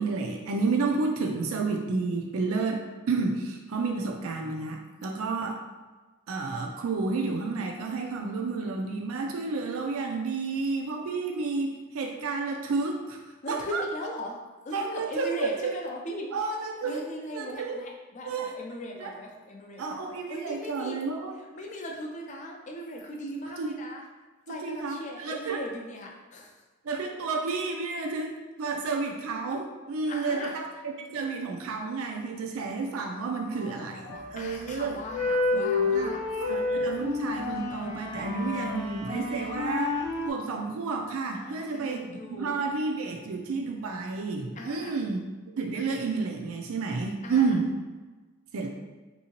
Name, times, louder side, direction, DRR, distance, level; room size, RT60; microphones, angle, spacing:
voice 1, 0.0-5.6 6.3-13.2 13.5-13.8 14.7-15.8 16.3-17.0 17.3-17.8 18.2-18.5 19.0-19.1 19.8-21.3 23.6-23.7 24.5-25.6 26.8-35.0 35.5-36.1 36.5-42.0 42.3-45.2 45.6-47.7 48.5-48.7, right 4 dB, 75° right, 2 dB, 0.4 m, -31 dB
voice 2, 13.4-14.4 14.6-16.3 16.8-20.0 20.3-21.0 21.5-24.0 24.5-26.6 30.1-30.6 33.5-36.2 41.3-42.6 44.5-45.0 47.2-47.6, equal, 35° left, 1 dB, 0.5 m, -39 dB
sound 1, 34.1-34.5 35.0-40.3, left 3 dB, 90° left, 0.8 m, -29 dB
3.6 x 2.7 x 2.8 m, 1.3 s
head